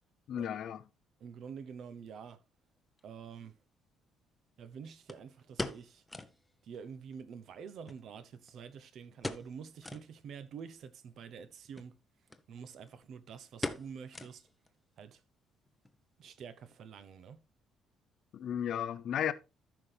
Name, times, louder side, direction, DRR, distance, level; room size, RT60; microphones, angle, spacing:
voice 1, 0.3-0.8 18.3-19.3, left 9 dB, 55° left, 0.7 m, -34 dB
voice 2, 1.2-2.4 3.0-3.6 4.6-6.0 6.6-12.0 12.5-14.5 15.0-15.2 16.2-17.4, right 7 dB, 55° right, 0.9 m, -47 dB
sound 1, 3.0-3.1 5.1-6.4 6.7-6.8 7.1-7.2 7.9-8.7 9.2-9.6 9.8-10.1 10.6-10.7 11.6-11.9 12.3-12.4 12.7-13.1 13.6-14.7 15.0-15.1 15.7-16.0 16.3-16.4, left 2 dB, 10° left, 0.8 m, -41 dB
13.5 x 5.9 x 3.4 m
cardioid pair, 160°, 0 cm